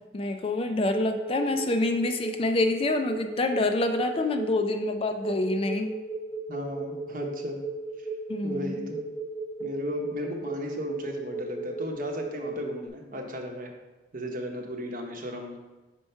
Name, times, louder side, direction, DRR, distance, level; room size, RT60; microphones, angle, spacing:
voice 1, 0.1-5.9 8.3-8.9, left 2 dB, 30° left, 6 dB, 0.4 m, -27 dB
sound 1, 0.9-12.9, right 4 dB, 5° right, 1.1 m, -35 dB
voice 2, 6.5-7.6 8.4-9.0 9.6-13.7 14.1-15.6, left 1 dB, 50° right, 2 dB, 0.9 m, -35 dB
4.5 x 4.4 x 5.5 m, 1.2 s
head